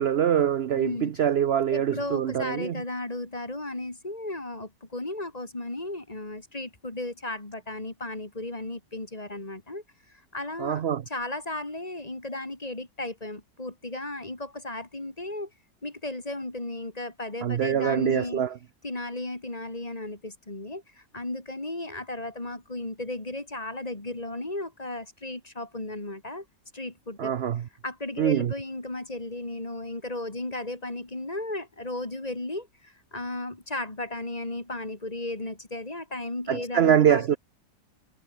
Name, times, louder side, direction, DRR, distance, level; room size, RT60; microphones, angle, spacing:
voice 1, 0.0-2.8 10.6-11.0 17.4-18.5 27.2-27.6 28.2-28.5 36.5-37.3, right 9 dB, 60° right, 0.6 m, -24 dB
voice 2, 0.8-1.1 1.7-9.8 10.3-15.5 15.8-18.4 18.8-26.4 26.7-27.3 27.8-37.4, left 2 dB, 20° left, 2.8 m, -35 dB
omnidirectional pair, 1.9 m